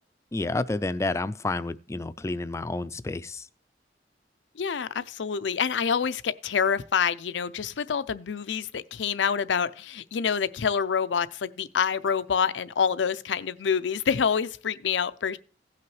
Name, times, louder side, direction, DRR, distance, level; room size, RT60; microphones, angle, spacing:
voice 1, 0.3-3.5, left 2 dB, 15° left, 0.3 m, -30 dB
voice 2, 4.6-15.4, left 6 dB, 85° left, 0.5 m, -27 dB
17.0 x 5.8 x 3.1 m
head